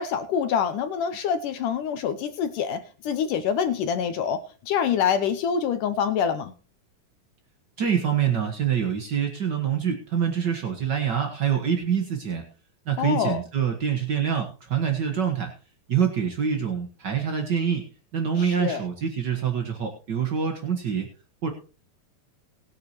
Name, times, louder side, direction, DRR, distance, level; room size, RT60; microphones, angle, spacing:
voice 1, 0.0-6.5 13.0-13.4 18.4-18.8, left 7 dB, 70° left, 9 dB, 2.2 m, -26 dB
voice 2, 7.8-12.4 12.9-15.5 15.9-17.9 18.1-21.1 21.4-21.5, right 7 dB, 55° right, 3 dB, 1.1 m, -25 dB
19.5 x 8.6 x 3.0 m, 0.36 s
omnidirectional pair, 4.2 m